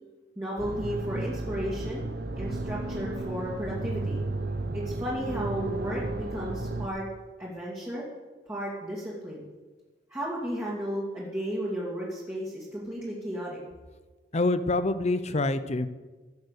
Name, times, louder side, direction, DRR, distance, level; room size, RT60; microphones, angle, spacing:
voice 1, 0.4-4.2 4.7-7.1 7.4-8.1 8.5-9.4 10.1-13.6, equal, 15° right, -6 dB, 2.5 m, -34 dB
sound 1, 0.6-6.9, right 2 dB, 65° right, 0.9 m, -33 dB
voice 2, 14.3-15.9, left 2 dB, 40° left, 12 dB, 0.7 m, -26 dB
16.0 x 7.2 x 6.7 m, 1.3 s
head